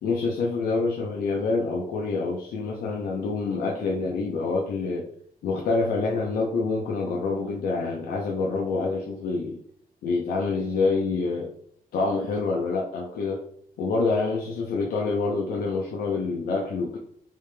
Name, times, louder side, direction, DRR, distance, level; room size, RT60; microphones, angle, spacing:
voice 1, 0.0-5.1 5.4-9.6 10.0-11.5 11.9-13.4 13.8-17.0, left 3 dB, 85° left, -2 dB, 0.6 m, -26 dB
3.4 x 2.8 x 3.3 m, 0.65 s
wide cardioid pair, 165°, 15 cm